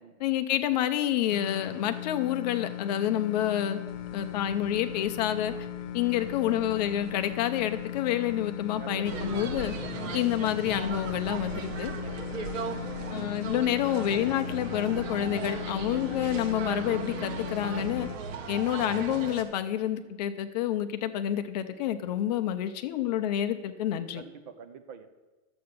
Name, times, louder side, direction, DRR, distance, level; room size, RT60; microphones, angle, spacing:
voice 1, 0.2-3.8 4.1-5.5 5.9-9.7 10.1-11.9 13.1-18.1 18.5-24.2, left 11 dB, 35° left, 9 dB, 0.6 m, -28 dB
sound 1, 1.3-18.2, left 12 dB, 80° left, 0.9 m, -38 dB
sound 2, 3.9-18.9, right 4 dB, 60° right, 1.8 m, -51 dB
voice 2, 8.7-9.5 12.0-12.3 24.1-25.1, right 6 dB, 35° right, 8 dB, 0.9 m, -46 dB
sound 3, 9.0-19.4, right 5 dB, 80° right, 1.5 m, -37 dB
11.5 x 7.8 x 6.8 m, 1.2 s
supercardioid pair, 175°, 38 cm